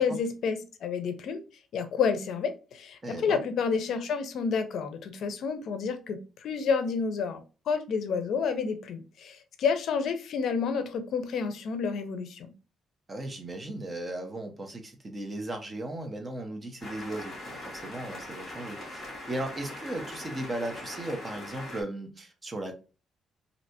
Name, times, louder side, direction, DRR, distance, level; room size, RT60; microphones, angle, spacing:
voice 1, 0.0-1.4 1.7-12.5, left 5 dB, 65° left, 0.5 m, -30 dB
voice 2, 3.0-3.4 13.1-22.7, right 1 dB, 20° right, 0.6 m, -36 dB
sound 1, 16.8-21.8, left 1 dB, 30° left, 1.6 m, -41 dB
3.2 x 2.7 x 2.7 m
cardioid pair, 145°, 0 cm